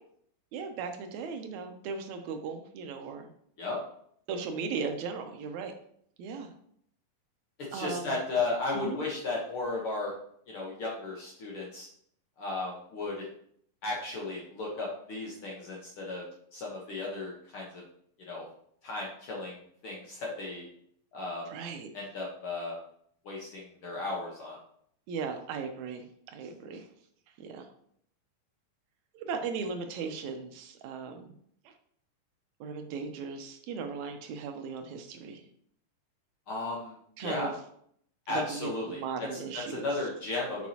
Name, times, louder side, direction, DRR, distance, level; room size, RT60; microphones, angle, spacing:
voice 1, 0.5-3.3 4.3-5.7 6.2-6.5 7.7-8.2 8.7-9.0 21.5-21.9 25.1-26.8 27.4-27.7 29.1-31.3 31.6-31.7 32.6-35.4 37.2-37.5 38.3-39.9, right 5 dB, 80° right, 5 dB, 1.7 m, -37 dB
voice 2, 7.6-10.1 10.5-11.9 12.4-13.2 13.8-17.8 18.3-18.4 18.8-19.6 19.8-20.7 21.1-21.5 21.9-22.8 23.2-24.6 36.5-37.5 38.3-40.7, left 3 dB, 70° left, -3 dB, 1.3 m, -35 dB
7.2 x 6.2 x 2.8 m, 0.65 s
omnidirectional pair, 4.0 m